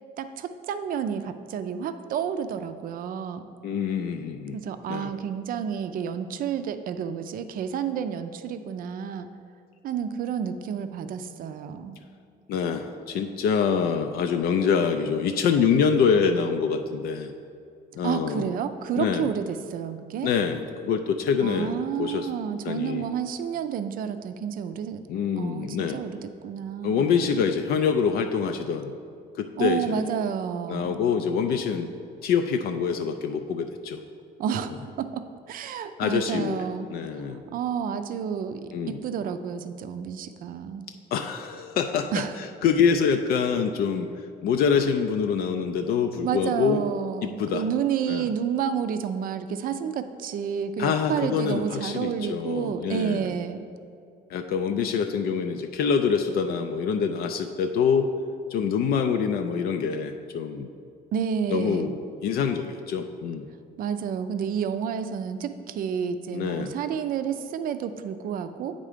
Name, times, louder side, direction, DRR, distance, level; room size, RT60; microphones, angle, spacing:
voice 1, 0.2-3.5 4.5-9.3 9.8-12.0 18.0-20.3 21.4-25.0 25.4-27.1 29.6-31.0 34.4-34.7 35.0-36.9 37.5-38.6 38.9-40.9 42.1-42.3 46.2-53.6 61.1-61.9 63.8-68.7, right 8 dB, 55° right, 10 dB, 0.5 m, -30 dB
voice 2, 3.6-4.6 4.9-5.1 12.5-17.3 17.9-18.5 19.0-19.3 20.2-22.3 22.6-23.0 25.1-26.0 26.8-28.9 29.3-30.0 30.7-31.9 32.2-34.0 36.0-36.6 36.9-37.4 38.7-39.0 41.1-44.1 44.4-46.8 47.4-47.6 48.1-48.3 50.8-53.3 54.3-58.1 58.5-60.7 61.5-61.9 62.2-63.5 66.3-66.7, left 6 dB, 65° left, 6 dB, 0.4 m, -25 dB
8.7 x 3.7 x 5.0 m, 2.4 s
cardioid pair, 110°, 17 cm